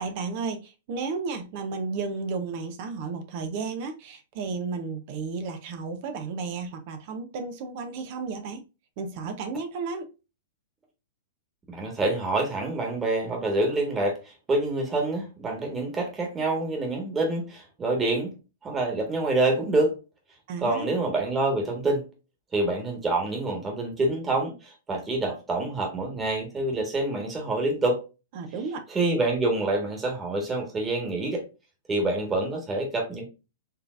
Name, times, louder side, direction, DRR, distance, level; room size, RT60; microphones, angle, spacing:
voice 1, 0.0-8.6 9.0-10.1 20.5-20.9 28.3-28.8, right 4 dB, 50° right, 0.8 m, -33 dB
voice 2, 11.7-18.3 18.6-19.9 20.6-22.0 22.5-28.0 28.9-31.4 31.9-33.2, right 2 dB, 20° right, 1.5 m, -26 dB
4.5 x 3.3 x 2.5 m
hypercardioid pair, 110°, 0 cm